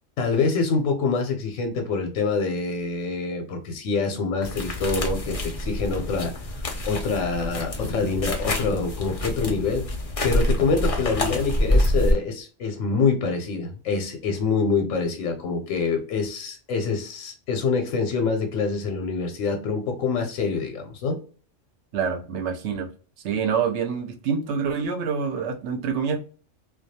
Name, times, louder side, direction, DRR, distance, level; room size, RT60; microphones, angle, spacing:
voice 1, 0.2-6.3 6.8-9.8 10.2-21.2, left 4 dB, 85° left, 1.0 m, -25 dB
sound 1, 4.4-12.1, left 1 dB, 50° left, 0.4 m, -26 dB
voice 2, 21.9-22.9 23.2-26.2, right 6 dB, 70° right, 0.9 m, -26 dB
2.3 x 2.2 x 2.6 m
omnidirectional pair, 1.3 m